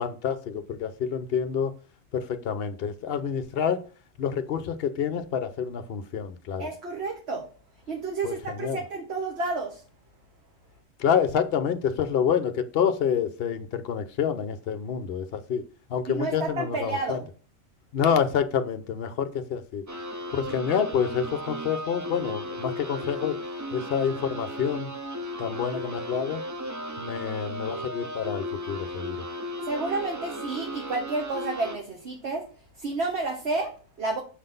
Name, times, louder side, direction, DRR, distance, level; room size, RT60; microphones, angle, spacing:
voice 1, 0.0-1.7 2.1-3.8 4.2-6.7 8.2-8.8 11.0-15.6 15.9-17.2 17.9-19.8 20.3-23.4 23.7-24.9 25.4-26.4 27.0-29.2, left 7 dB, 55° left, 0.8 m, -28 dB
voice 2, 6.6-7.5 7.9-9.8 16.1-17.3 29.6-32.5 32.8-34.2, right 3 dB, 55° right, 1.3 m, -30 dB
sound 1, 19.9-31.8, equal, 25° right, 0.4 m, -35 dB
6.5 x 3.9 x 5.3 m
omnidirectional pair, 1.4 m